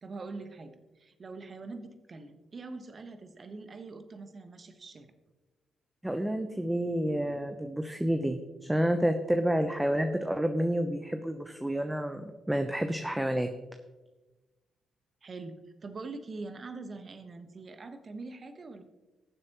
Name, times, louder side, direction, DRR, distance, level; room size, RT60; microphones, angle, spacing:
voice 1, 0.0-5.1 15.2-15.6 15.8-18.8, right 3 dB, 45° right, 8 dB, 1.3 m, -43 dB
voice 2, 6.0-13.5, right 1 dB, 10° right, 7 dB, 0.9 m, -29 dB
18.5 x 7.6 x 3.1 m, 1.2 s
hypercardioid pair, 45°, 0 cm